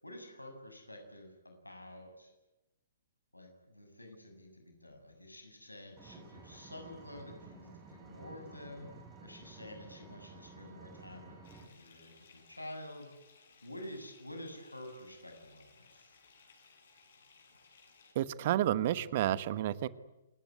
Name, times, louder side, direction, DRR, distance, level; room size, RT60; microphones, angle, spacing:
voice 1, 0.0-2.3 3.3-13.1 13.6-16.2, left 1 dB, 85° left, 5 dB, 7.3 m, -49 dB
Vehicle, 6.0-11.7, right 4 dB, 15° right, 6.3 m, -53 dB
Bathtub (filling or washing) / Fill (with liquid), 11.4-18.1, left 4 dB, 55° left, 7.8 m, -62 dB
voice 2, 18.1-19.9, right 12 dB, 45° right, 16 dB, 1.2 m, -30 dB
27.5 x 19.0 x 9.7 m, 0.97 s
figure-of-eight pair, 115°, 0 cm